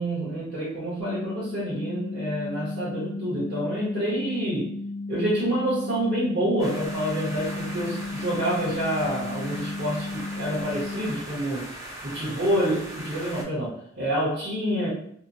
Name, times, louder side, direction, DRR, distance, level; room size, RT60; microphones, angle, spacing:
voice 1, 0.0-4.7 5.1-11.7 12.0-14.9, right 1 dB, 50° right, -10 dB, 1.0 m, -27 dB
sound 1, 1.0-11.0, left 3 dB, 85° left, 0.5 m, -34 dB
sound 2, 6.6-13.4, right 1 dB, 15° right, 0.6 m, -39 dB
2.8 x 2.1 x 2.5 m, 0.68 s
head